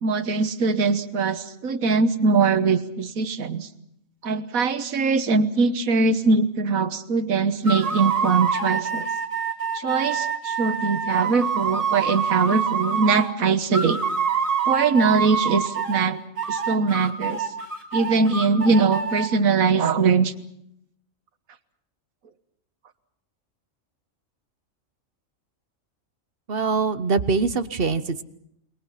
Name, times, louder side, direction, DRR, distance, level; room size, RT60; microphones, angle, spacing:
voice 1, 0.0-3.7 4.2-9.1 9.7-14.0 14.7-16.2 16.5-17.5 17.9-20.3, right 4 dB, 90° right, 11 dB, 1.7 m, -22 dB
sound 1, 7.6-13.3 13.7-16.1 16.4-19.3, right 6 dB, 70° right, 4.3 m, -26 dB
voice 2, 26.5-28.2, right 4 dB, 45° right, 12 dB, 1.2 m, -23 dB
28.0 x 22.5 x 5.8 m, 0.76 s
omnidirectional pair, 1.4 m